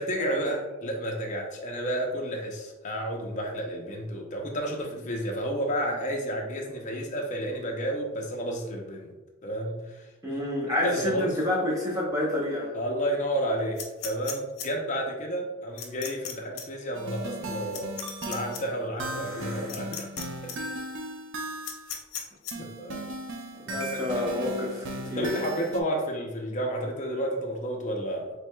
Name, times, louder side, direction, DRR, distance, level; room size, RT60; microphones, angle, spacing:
voice 1, 0.0-9.1 9.4-10.4 10.8-11.4 12.7-17.9 18.2-20.1 20.4-20.6 22.5-23.1 23.8-24.3 25.0-28.3, right 1 dB, 35° left, 1 dB, 0.6 m, -31 dB
voice 2, 10.2-12.7 19.1-19.8 23.6-25.4, left 1 dB, 15° right, -5 dB, 0.9 m, -29 dB
sound 1, 13.8-14.7 15.8-16.3 16.6-16.7 17.7-18.6 19.7-20.2 20.5-20.6 21.6-22.5, left 8 dB, 85° left, 0.7 m, -36 dB
sound 2, 16.9-22.0 22.5-25.8, right 1 dB, 55° right, 0.4 m, -37 dB
4.6 x 3.4 x 2.2 m, 1.1 s
head